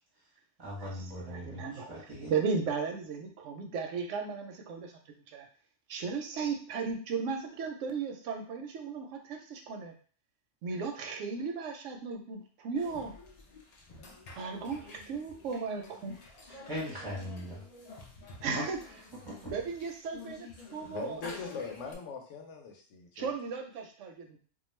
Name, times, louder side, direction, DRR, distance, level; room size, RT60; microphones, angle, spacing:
voice 1, 0.6-2.4 16.5-17.6 18.5-18.6 19.2-19.5, equal, 25° right, -7 dB, 0.7 m, -40 dB
voice 2, 1.2-1.9 2.3-4.9 5.3-5.4 5.9-9.9 10.6-13.1 14.4-16.2 18.4-18.8 19.5-21.4 23.2-24.4, right 5 dB, 85° right, 3 dB, 0.9 m, -35 dB
sound 1, 12.7-21.9, left 3 dB, 65° left, 0.4 m, -49 dB
voice 3, 20.9-23.3, left 5 dB, 80° left, 3 dB, 0.9 m, -41 dB
2.3 x 2.3 x 3.1 m, 0.43 s
omnidirectional pair, 1.2 m